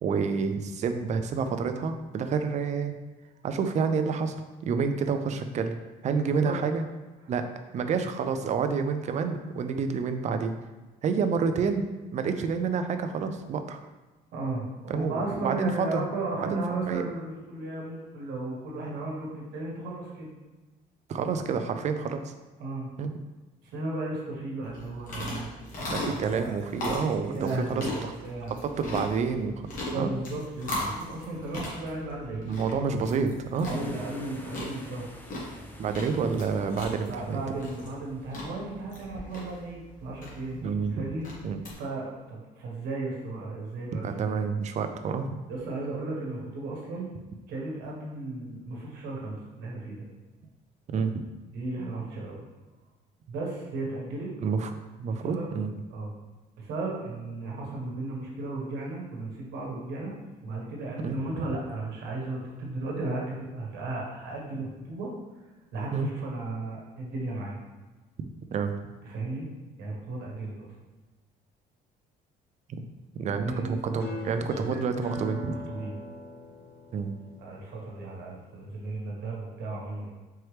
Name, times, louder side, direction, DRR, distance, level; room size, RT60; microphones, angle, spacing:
voice 1, 0.0-2.9 3.4-4.4 4.6-5.8 6.0-6.8 7.3-7.5 7.7-10.5 11.0-11.8 12.1-13.8 14.9-16.0 16.4-17.1 21.1-22.3 23.0-23.1 25.9-28.1 28.6-29.5 29.9-30.1 32.3-33.8 35.8-37.4 40.6-41.1 41.4-41.6 44.0-45.3 50.9-51.2 54.4-54.7 55.0-55.7 61.0-61.5 65.9-66.1 68.5-68.7 72.7-72.9 73.2-75.6 76.9-77.1, right 5 dB, 45° right, 8 dB, 0.4 m, -28 dB
voice 2, 6.3-6.6 14.3-20.3 21.9-22.0 22.6-22.9 23.7-26.5 27.3-27.9 28.2-28.6 29.8-32.5 33.0-33.2 33.6-35.1 37.1-40.6 40.9-41.2 41.7-44.4 45.5-47.1 47.5-50.0 51.5-52.4 53.3-54.3 55.1-55.5 55.9-56.1 56.6-60.1 60.4-65.4 65.7-67.6 69.0-69.5 69.8-70.7 73.2-73.7 75.7-75.9 77.4-80.1, right 2 dB, 80° right, -3 dB, 1.2 m, -35 dB
sound 1, 24.6-41.7, left 1 dB, 50° left, 1.3 m, -38 dB
sound 2, 33.6-39.1, equal, 10° left, 0.5 m, -46 dB
sound 3, 74.0-79.0, left 1 dB, 75° left, 1.0 m, -41 dB
4.5 x 3.0 x 3.2 m, 1.2 s
cardioid pair, 110°, 17 cm